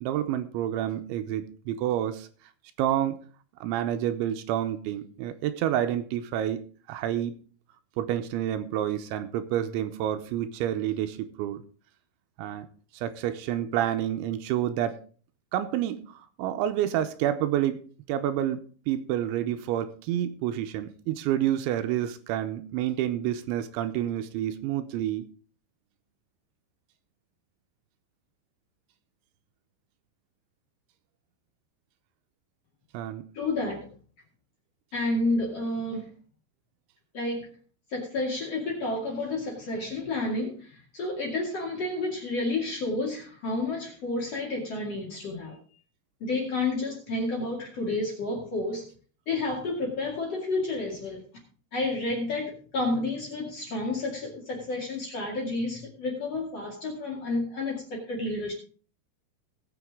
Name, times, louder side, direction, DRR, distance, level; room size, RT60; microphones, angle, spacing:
voice 1, 0.0-2.3 2.8-3.2 3.6-6.6 6.9-7.4 8.0-11.6 12.4-12.7 12.9-15.0 15.5-25.3 32.9-33.3, right 11 dB, 85° right, 9 dB, 3.0 m, -29 dB
voice 2, 33.3-33.9 34.9-36.1 37.1-37.5 37.9-45.6 46.2-48.9 49.3-51.2 51.7-58.5, left 2 dB, 40° left, -1 dB, 2.6 m, -30 dB
18.5 x 7.4 x 3.6 m, 0.41 s
omnidirectional pair, 5.5 m